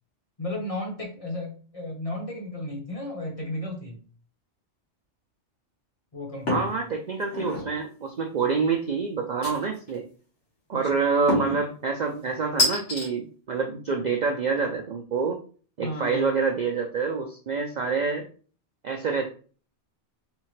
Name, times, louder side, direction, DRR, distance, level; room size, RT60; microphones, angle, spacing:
voice 1, 0.4-4.0 6.1-6.7 8.4-8.6 10.7-10.9 15.8-16.3, left 1 dB, 35° left, 1 dB, 0.9 m, -34 dB
sound 1, 6.5-6.8 7.2-7.7 9.4-10.0 11.3-11.6 12.6-13.1, left 1 dB, 85° left, 1.7 m, -26 dB
voice 2, 6.5-10.0 10.7-15.4 15.8-18.3 18.8-19.3, right 4 dB, 55° right, 1 dB, 0.5 m, -27 dB
3.5 x 3.2 x 3.2 m, 0.40 s
omnidirectional pair, 1.2 m